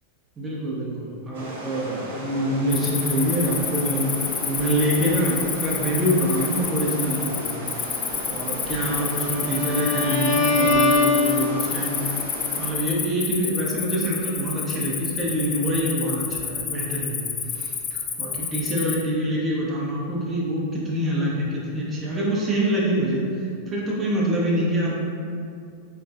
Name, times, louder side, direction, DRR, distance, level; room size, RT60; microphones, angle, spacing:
voice 1, 0.4-8.0 8.3-12.0 12.6-17.2 17.5-25.0, right 1 dB, 20° right, -5 dB, 0.6 m, -25 dB
sound 1, 1.3-12.7, right 1 dB, 60° right, 0.6 m, -36 dB
Cricket, 2.7-19.0, left 7 dB, 30° left, 0.3 m, -29 dB
Bowed string instrument, 8.8-11.9, left 3 dB, 5° left, 1.3 m, -23 dB
3.7 x 3.1 x 2.4 m, 2.4 s
figure-of-eight pair, 90°, 0 cm